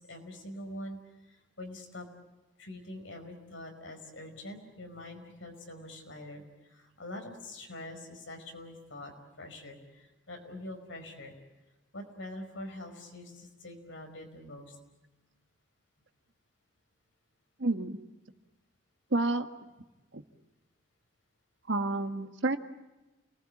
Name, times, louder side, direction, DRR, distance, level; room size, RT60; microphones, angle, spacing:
voice 1, 0.0-2.1 2.6-11.3 11.9-14.8, left 1 dB, 85° left, 4 dB, 5.2 m, -45 dB
voice 2, 17.6-18.0 19.1-19.5 20.1-20.2 21.7-22.6, right 2 dB, 75° right, 7 dB, 1.7 m, -29 dB
29.0 x 20.0 x 8.6 m, 1.1 s
head